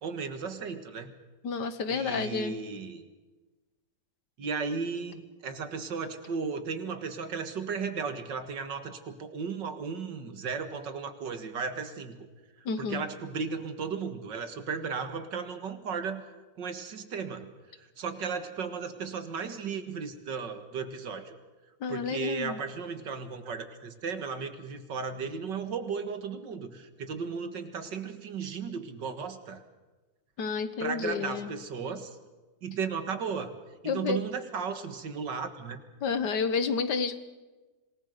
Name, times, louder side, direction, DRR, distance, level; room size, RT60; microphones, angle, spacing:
voice 1, 0.0-1.1 1.9-3.0 4.4-12.3 12.8-16.2 16.6-17.5 18.0-21.4 21.9-29.6 30.8-32.2 32.6-33.5 33.8-35.8, right 5 dB, 70° right, 9 dB, 2.3 m, -35 dB
voice 2, 1.4-2.6 12.7-13.0 21.8-22.6 30.4-31.5 33.9-34.2 36.0-37.2, left 5 dB, 65° left, 12 dB, 1.8 m, -30 dB
26.5 x 19.5 x 6.6 m, 1.2 s
omnidirectional pair, 2.0 m